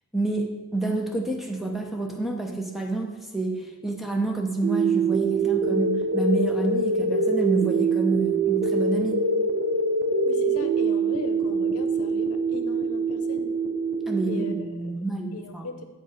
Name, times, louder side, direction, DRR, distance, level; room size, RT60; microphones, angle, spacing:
voice 1, 0.1-9.2 14.1-14.5 14.7-15.7, right 3 dB, ahead, 2 dB, 0.6 m, -28 dB
sound 1, 4.6-14.6, right 3 dB, 45° right, 0.6 m, -24 dB
voice 2, 10.2-13.5 14.2-15.0 15.3-15.8, left 3 dB, 80° left, 7 dB, 0.7 m, -38 dB
8.1 x 5.2 x 4.4 m, 1.2 s
head